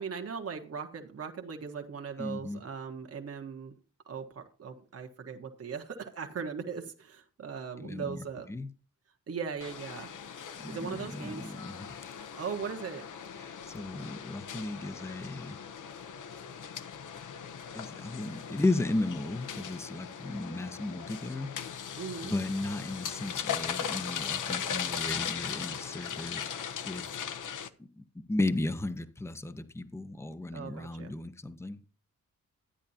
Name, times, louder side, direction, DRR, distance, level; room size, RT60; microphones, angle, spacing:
voice 1, 0.0-3.7 4.1-8.5 9.3-10.1 10.7-11.5 12.4-13.0 22.0-22.3 30.5-31.1, right 6 dB, 45° right, 1.4 m, -39 dB
voice 2, 2.2-2.6 7.8-8.2 8.5-8.7 10.6-12.0 13.4-15.6 17.7-21.5 22.2-26.4 26.8-27.0 28.0-31.8, left 2 dB, 10° left, 0.7 m, -35 dB
sound 1, 9.6-27.7, left 8 dB, 65° left, 0.9 m, -39 dB
12.5 x 10.0 x 2.8 m
wide cardioid pair, 160°, 32 cm